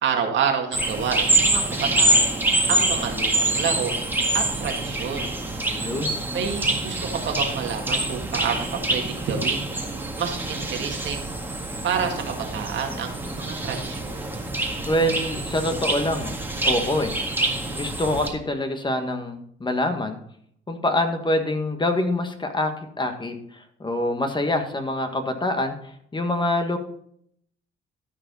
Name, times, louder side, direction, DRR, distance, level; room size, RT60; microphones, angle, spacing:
voice 1, 0.0-1.6 2.0-2.3 2.7-3.9 4.3-5.3 6.3-9.7 10.2-11.2 11.8-14.2, right 6 dB, 70° right, 3 dB, 2.1 m, -28 dB
sound 1, 0.7-18.3, right 1 dB, 10° right, 1.8 m, -25 dB
voice 2, 5.7-6.2 14.9-16.3 16.6-17.1 17.7-20.2 20.7-22.7 23.0-26.8, left 1 dB, 25° left, 6 dB, 1.6 m, -25 dB
13.5 x 5.0 x 5.4 m, 0.66 s
cardioid pair, 90°, 20 cm